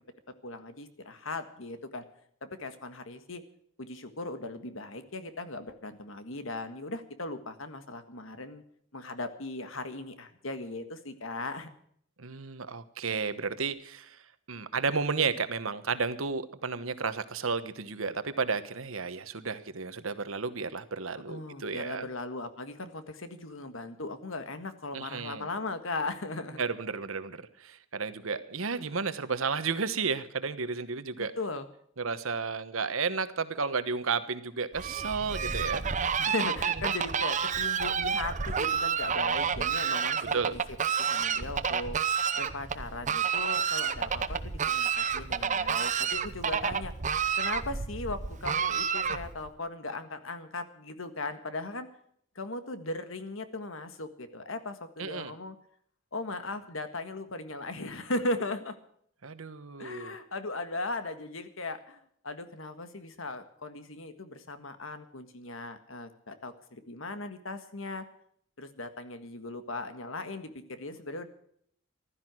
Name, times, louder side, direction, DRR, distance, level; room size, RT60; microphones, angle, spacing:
voice 1, 0.4-2.0 2.4-3.4 3.8-8.6 8.9-11.7 21.1-26.6 31.2-31.7 36.2-40.6 41.0-42.0 42.4-46.9 47.4-51.9 52.4-55.6 56.1-58.8 59.8-68.1 68.6-71.3, left 2 dB, 70° left, 9 dB, 1.7 m, -38 dB
voice 2, 12.2-14.2 14.5-22.1 24.9-25.5 26.6-31.3 32.0-35.8 40.2-40.5 55.0-55.3 59.2-60.1, right 5 dB, 75° right, 12 dB, 1.2 m, -32 dB
Fowl, 34.7-49.5, right 7 dB, 35° right, 0.8 m, -30 dB
15.5 x 12.5 x 6.2 m, 0.66 s
head